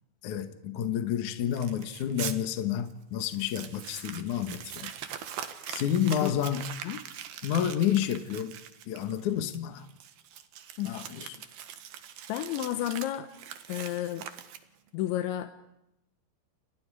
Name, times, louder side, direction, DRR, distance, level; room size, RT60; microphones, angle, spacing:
voice 1, 0.2-4.9 5.7-6.7 7.4-8.6 8.9-9.9 10.8-11.4, left 9 dB, 60° left, 2.3 m, -30 dB
Crumpling crinkling, 1.5-2.4 2.9-3.0 3.2-14.9, right 9 dB, 65° right, 3.2 m, -42 dB
voice 2, 12.3-13.3 13.7-14.2 14.9-15.5, left 13 dB, 90° left, 3.5 m, -31 dB
29.5 x 29.5 x 5.0 m
omnidirectional pair, 5.1 m